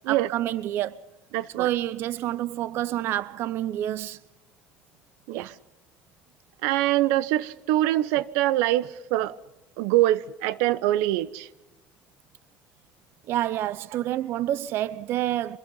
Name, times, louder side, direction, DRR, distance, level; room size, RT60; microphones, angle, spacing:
voice 1, 0.1-1.0 1.6-4.2 5.3-5.5 13.3-15.6, right 13 dB, 55° right, 0.7 m, -28 dB
voice 2, 1.3-1.7 5.3-5.5 6.6-9.4 9.8-11.5, right 15 dB, 85° right, 0.9 m, -24 dB
25.0 x 21.5 x 5.5 m
cardioid pair, 135°, 5 cm